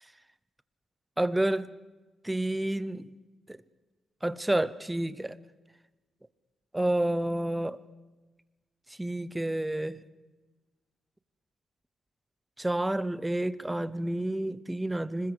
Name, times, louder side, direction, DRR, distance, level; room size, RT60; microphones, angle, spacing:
voice 1, 1.2-1.7 2.2-3.1 3.5-3.6 4.2-5.4 6.7-7.8 9.0-10.0 12.6-15.3, right 1 dB, 10° right, 0.7 m, -29 dB
26.0 x 20.5 x 8.0 m
wide cardioid pair, 145°, 0 cm